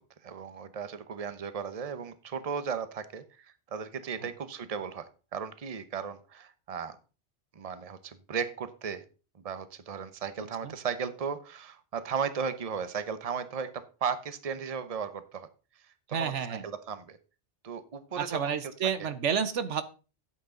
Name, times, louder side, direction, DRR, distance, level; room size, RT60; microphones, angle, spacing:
voice 1, 0.2-3.2 3.7-7.0 7.6-9.0 9.4-15.5 16.1-17.2 17.6-18.6 19.0-19.1, right 6 dB, 35° right, 12 dB, 0.9 m, -36 dB
voice 2, 10.4-10.7 16.1-16.6 18.2-19.8, right 7 dB, 85° right, 12 dB, 1.2 m, -30 dB
12.5 x 8.2 x 3.8 m, 0.33 s
omnidirectional pair, 1.2 m